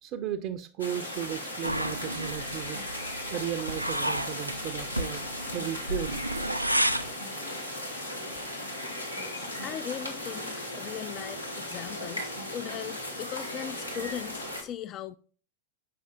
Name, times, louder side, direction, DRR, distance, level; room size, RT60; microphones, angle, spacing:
voice 1, 0.0-2.8 3.3-6.2 8.3-8.5, right 11 dB, 40° right, 0.5 m, -35 dB
sound 1, 0.8-14.6, left 1 dB, 90° left, 1.6 m, -37 dB
sound 2, 1.6-7.1, right 1 dB, 90° right, 0.4 m, -32 dB
voice 2, 9.2-15.2, left 10 dB, 35° left, 0.4 m, -39 dB
7.7 x 5.3 x 3.8 m
figure-of-eight pair, 90°, 0 cm